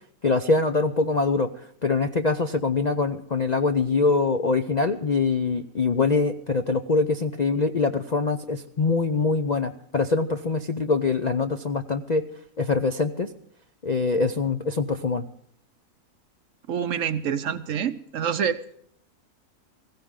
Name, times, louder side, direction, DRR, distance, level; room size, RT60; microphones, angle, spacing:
voice 1, 0.2-1.5 1.8-12.3 12.6-13.3 13.8-15.2, left 4 dB, 50° left, 8 dB, 0.5 m, -24 dB
voice 2, 16.7-18.6, right 8 dB, 60° right, 12 dB, 0.9 m, -27 dB
18.5 x 16.0 x 3.7 m, 0.66 s
omnidirectional pair, 1.7 m